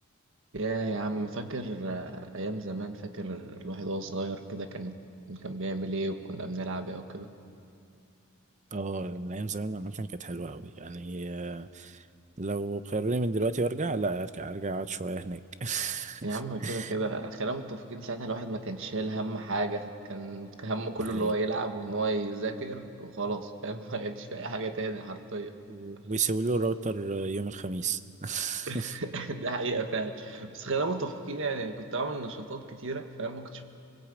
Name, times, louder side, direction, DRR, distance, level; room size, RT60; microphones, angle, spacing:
voice 1, 0.5-5.0 5.3-7.3 16.2-25.5 28.7-33.6, right 2 dB, 65° right, 7 dB, 1.5 m, -33 dB
voice 2, 8.7-12.1 12.4-16.9 21.1-21.3 25.7-28.9, right 3 dB, 35° right, 12 dB, 0.7 m, -32 dB
25.0 x 21.0 x 8.4 m, 2.6 s
head